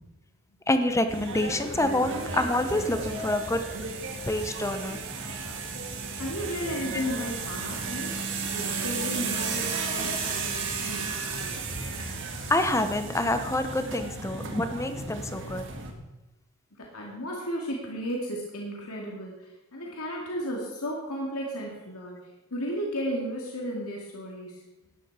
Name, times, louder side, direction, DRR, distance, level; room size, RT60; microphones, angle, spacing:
voice 1, 0.7-3.7 4.3-5.0 6.9-7.0 12.5-15.6, left 1 dB, 15° left, 9 dB, 0.8 m, -27 dB
sound 1, 1.1-15.9, right 4 dB, 55° right, 1.8 m, -34 dB
voice 2, 6.2-11.5 16.8-19.3 19.7-22.2 22.5-24.5, equal, 85° left, -2 dB, 2.3 m, -34 dB
13.0 x 10.0 x 4.8 m, 1.0 s
head